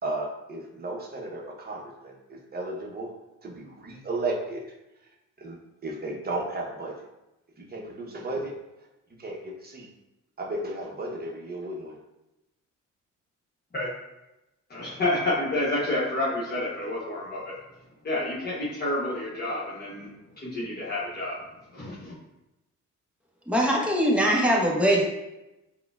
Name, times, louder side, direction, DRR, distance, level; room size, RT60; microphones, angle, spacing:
voice 1, 0.0-3.1 3.4-4.6 5.4-5.6 5.8-7.0 7.6-8.5 9.2-9.9 10.4-12.0, right 2 dB, 30° right, -1 dB, 0.8 m, -34 dB
voice 2, 14.7-17.6 18.0-20.1 20.4-21.4 21.7-22.2, left 1 dB, 30° left, -7 dB, 0.9 m, -29 dB
voice 3, 23.5-25.0, equal, 5° right, -3 dB, 0.8 m, -22 dB
4.9 x 2.2 x 2.3 m, 0.95 s
cardioid pair, 90°, 30 cm